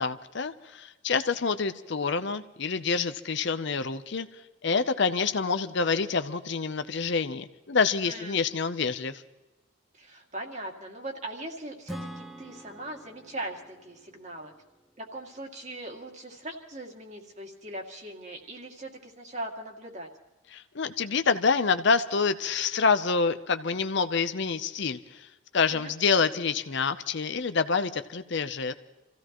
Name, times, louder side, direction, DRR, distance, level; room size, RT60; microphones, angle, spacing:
voice 1, 0.0-4.3 4.6-9.2 20.5-28.7, left 5 dB, 55° left, 10 dB, 0.6 m, -27 dB
voice 2, 8.0-8.4 9.9-14.5 15.0-20.1 25.7-25.9, right 1 dB, 35° right, 1 dB, 2.2 m, -40 dB
Acoustic guitar / Strum, 11.9-15.5, equal, ahead, 0.7 m, -45 dB
27.5 x 16.0 x 3.0 m, 1.0 s
head